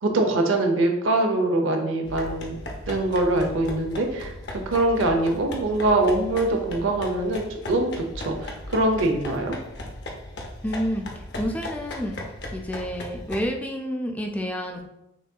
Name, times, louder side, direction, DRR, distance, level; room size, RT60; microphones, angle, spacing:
voice 1, 0.0-2.6 2.9-4.3 4.7-9.6, right 2 dB, 75° right, 3 dB, 0.7 m, -23 dB
sound 1, 2.1-13.5, left 1 dB, 55° left, 0.6 m, -37 dB
voice 2, 10.6-12.2 12.5-14.8, equal, 5° left, 2 dB, 0.4 m, -29 dB
6.0 x 2.7 x 2.3 m, 0.88 s
head